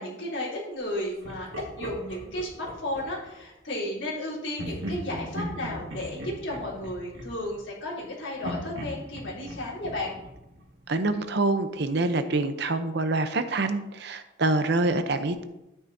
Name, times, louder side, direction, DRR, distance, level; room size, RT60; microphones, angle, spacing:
voice 1, 0.0-10.1, left 1 dB, 70° left, -6 dB, 3.8 m, -33 dB
Laughter, 1.2-3.4 4.5-8.0 8.4-11.2, equal, 90° right, 1.9 m, -39 dB
voice 2, 10.9-15.4, right 2 dB, 60° right, 9 dB, 0.7 m, -26 dB
13.0 x 8.6 x 2.8 m, 0.93 s
head